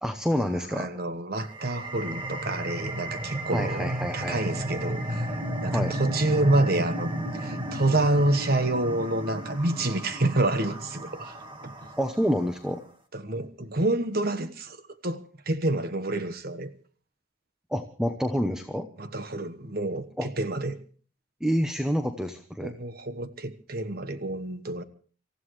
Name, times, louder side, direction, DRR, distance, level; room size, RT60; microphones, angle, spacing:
voice 1, 0.0-0.9 3.5-4.4 5.7-5.9 12.0-12.8 17.7-18.9 20.2-20.3 21.4-22.7, equal, 5° right, 0.9 m, -28 dB
voice 2, 0.7-5.3 5.6-11.4 11.6-11.7 13.1-14.8 15.0-15.2 15.5-16.7 19.0-20.8 22.6-24.8, right 2 dB, 50° right, 1.3 m, -28 dB
sound 1, 1.4-12.6, right 1 dB, 25° right, 1.7 m, -33 dB
27.0 x 15.0 x 3.3 m
head